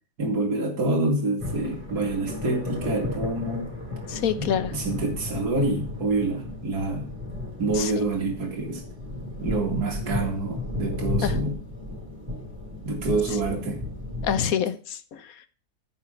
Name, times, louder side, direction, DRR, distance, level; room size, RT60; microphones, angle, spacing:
voice 1, 0.2-3.7 4.4-7.1 7.6-8.8 9.4-11.6 12.8-13.8, right 2 dB, 55° right, 1 dB, 3.0 m, -27 dB
sound 1, 1.4-14.4, left 2 dB, 5° right, 4.7 m, -34 dB
voice 2, 4.1-4.7 7.8-8.0 11.2-11.3 14.2-15.3, left 8 dB, 55° left, 13 dB, 1.2 m, -26 dB
9.5 x 6.7 x 8.0 m, 0.38 s
omnidirectional pair, 2.1 m